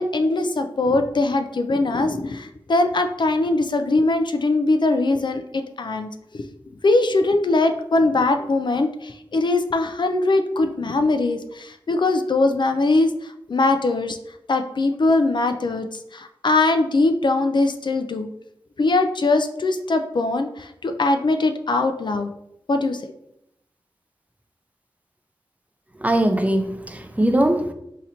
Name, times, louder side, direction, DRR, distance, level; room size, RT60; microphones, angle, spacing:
voice 1, 0.0-6.5 6.8-14.2 14.5-18.3 18.8-22.3 22.7-23.0, left 2 dB, 55° left, 7 dB, 0.3 m, -21 dB
voice 2, 26.0-27.7, right 1 dB, 15° right, 6 dB, 0.5 m, -20 dB
3.9 x 2.8 x 2.7 m, 0.80 s
cardioid pair, 40°, 9 cm